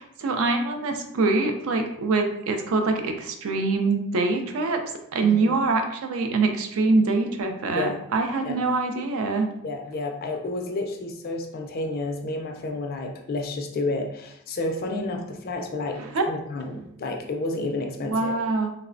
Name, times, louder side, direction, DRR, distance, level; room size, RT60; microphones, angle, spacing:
voice 1, 0.0-4.8 5.1-9.5 16.0-16.3 18.1-18.7, right 3 dB, 65° right, 5 dB, 0.4 m, -24 dB
voice 2, 5.2-5.5 7.7-8.0 8.4-8.6 9.6-16.0 16.3-18.3, left 2 dB, 45° left, 3 dB, 0.3 m, -30 dB
3.1 x 2.0 x 2.5 m, 0.76 s
head